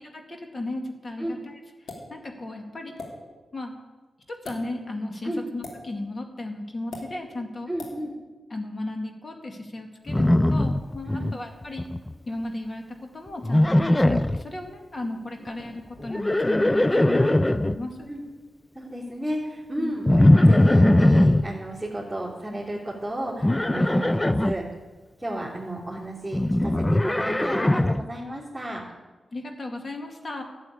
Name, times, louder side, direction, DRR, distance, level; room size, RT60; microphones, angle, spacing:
voice 1, 0.1-3.0 3.5-3.7 4.3-7.7 8.5-11.9 12.3-18.1 19.7-20.0 29.3-30.4, left 2 dB, 40° left, 3 dB, 2.2 m, -35 dB
sound 1, 1.9-2.1 3.0-3.1 4.3-4.6 5.6-5.8 6.9-7.1 7.8-8.0, left 3 dB, 85° left, 2.9 m, -38 dB
voice 2, 7.7-8.1 11.1-11.3 18.1-18.2 18.7-24.6 25.2-28.8, right 1 dB, 5° right, -9 dB, 3.5 m, -33 dB
Livestock farm animals working animals, 10.1-11.3 11.6-12.1 13.4-14.4 16.0-17.8 20.1-21.4 23.4-24.5 26.3-28.1, left 1 dB, 15° left, 0.4 m, -20 dB
12.5 x 7.9 x 8.5 m, 1.3 s
cardioid pair, 70°, 0 cm